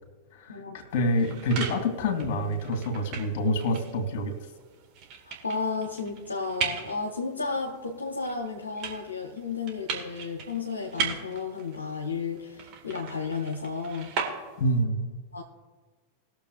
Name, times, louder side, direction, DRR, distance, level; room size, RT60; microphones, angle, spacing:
voice 1, 0.3-4.4 14.6-15.2, left 1 dB, 45° left, 5 dB, 2.4 m, -27 dB
sound 1, 0.9-14.8, right 6 dB, 40° right, 1.9 m, -38 dB
voice 2, 5.3-14.1 15.3-15.4, left 4 dB, 75° left, 3 dB, 1.0 m, -33 dB
20.5 x 6.9 x 2.5 m, 1.5 s
figure-of-eight pair, 90°, 0 cm